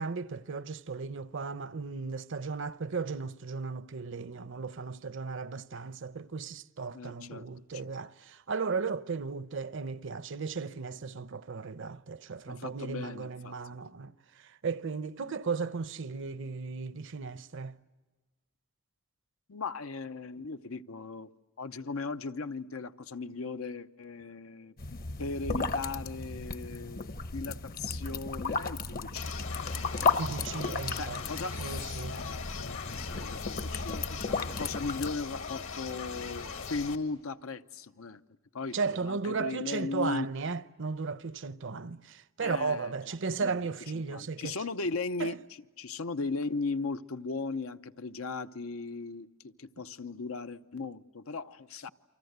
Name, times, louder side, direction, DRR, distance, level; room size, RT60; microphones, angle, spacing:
voice 1, 0.0-17.7 30.2-31.2 31.6-32.2 38.7-44.6 45.2-45.4, right 4 dB, 65° right, 0.8 m, -35 dB
voice 2, 6.9-7.4 7.8-7.9 12.5-13.8 19.5-21.3 21.6-27.0 27.3-29.3 30.9-31.6 32.1-38.2 38.5-40.3 42.4-43.1 43.4-45.4 45.8-51.9, left 3 dB, 85° left, 0.8 m, -37 dB
sound 1, 24.8-35.1, left 4 dB, 45° left, 0.9 m, -34 dB
sound 2, 29.2-37.0, left 5 dB, 70° left, 1.8 m, -40 dB
29.0 x 24.5 x 8.1 m
head